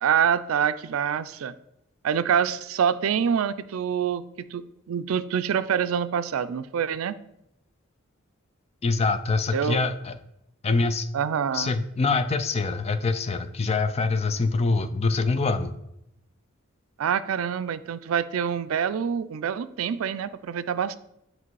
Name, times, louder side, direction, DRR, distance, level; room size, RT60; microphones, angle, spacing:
voice 1, 0.0-1.5 2.0-7.2 9.5-9.8 11.1-11.7 17.0-21.0, right 8 dB, 75° right, 13 dB, 0.4 m, -26 dB
voice 2, 8.8-10.2 10.6-11.1 11.5-15.7, left 3 dB, 30° left, 11 dB, 0.4 m, -24 dB
7.5 x 3.1 x 4.6 m, 0.82 s
head